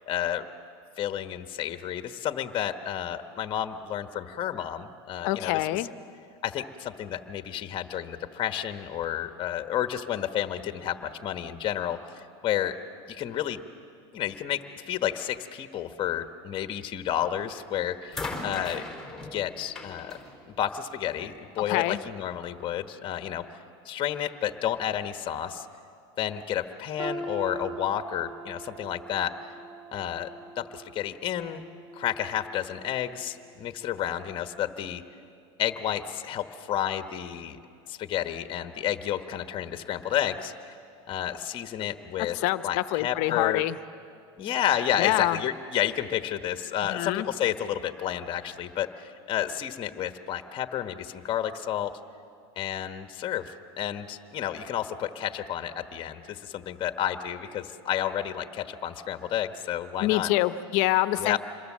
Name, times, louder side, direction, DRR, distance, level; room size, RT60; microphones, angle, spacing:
voice 1, 0.1-0.5 1.0-5.6 6.4-12.8 13.1-13.6 14.1-18.8 19.3-20.2 20.6-23.4 23.8-25.7 26.2-29.3 29.9-30.3 30.6-31.6 31.9-35.0 35.6-37.6 37.9-40.7 41.1-42.4 42.6-43.6 44.4-51.9 52.6-60.3 61.2-61.4, left 10 dB, 35° left, 8 dB, 1.3 m, -31 dB
voice 2, 5.2-5.9 21.7-22.0 42.3-43.8 45.0-45.4 46.9-47.3 60.0-61.4, left 17 dB, 60° left, 13 dB, 0.9 m, -26 dB
sound 1, 17.2-17.5 18.1-21.4 22.4-22.5, left 3 dB, ahead, 4.0 m, -39 dB
sound 2, 27.0-32.9 33.3-33.6 34.3-34.4, right 3 dB, 35° right, 1.3 m, -42 dB
27.0 x 22.0 x 7.4 m, 2.4 s
supercardioid pair, 115°, 14 cm